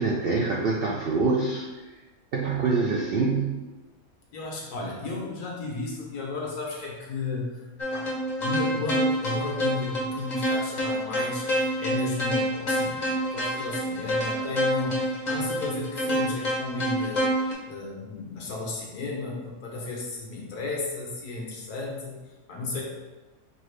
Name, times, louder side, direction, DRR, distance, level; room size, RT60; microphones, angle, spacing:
voice 1, 0.0-1.7 2.3-3.6, right 4 dB, 80° right, -2 dB, 0.5 m, -25 dB
voice 2, 4.3-8.1 8.4-15.0 15.3-17.3 17.7-22.2 22.5-22.8, left 3 dB, 90° left, -2 dB, 1.5 m, -34 dB
sound 1, 7.8-17.5, equal, 40° left, 0.6 m, -27 dB
5.4 x 2.5 x 3.2 m, 1.2 s
omnidirectional pair, 1.6 m